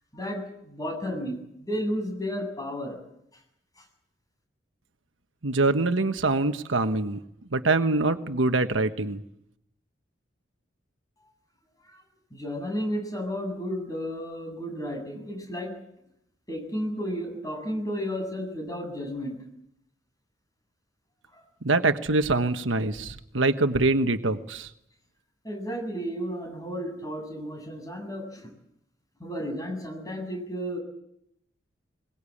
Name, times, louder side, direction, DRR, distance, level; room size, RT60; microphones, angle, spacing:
voice 1, 0.1-3.0 3.8-3.9 11.9-12.0 12.3-15.7 16.5-19.4 21.3-21.4 25.4-28.5 29.2-30.8, equal, 20° left, 3 dB, 7.7 m, -33 dB
voice 2, 5.4-7.2 7.5-9.2 21.6-24.7, right 2 dB, 85° right, 8 dB, 1.3 m, -24 dB
22.5 x 21.0 x 8.6 m, 0.79 s
head